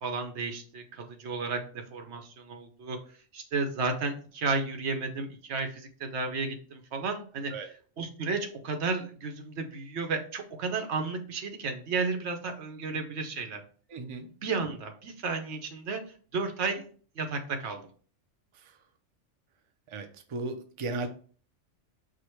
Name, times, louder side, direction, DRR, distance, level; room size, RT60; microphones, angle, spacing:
voice 1, 0.0-3.0 3.3-7.5 8.0-13.6 14.2-16.0 16.3-16.9 17.2-17.8, right 4 dB, 65° right, 5 dB, 1.0 m, -33 dB
voice 2, 13.9-14.3 19.9-21.1, right 3 dB, 45° right, 5 dB, 0.4 m, -35 dB
5.0 x 2.1 x 4.4 m, 0.43 s
omnidirectional pair, 1.3 m